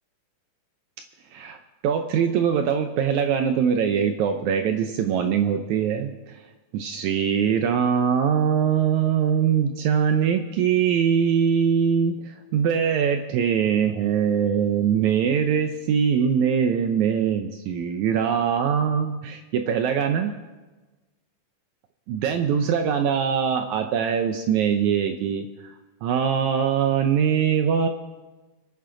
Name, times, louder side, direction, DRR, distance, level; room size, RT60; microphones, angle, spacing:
voice 1, 1.3-6.4 6.7-20.3 22.1-25.7 26.0-27.9, right 7 dB, 75° right, 6 dB, 1.9 m, -22 dB
26.5 x 9.2 x 3.8 m, 1.2 s
omnidirectional pair, 3.7 m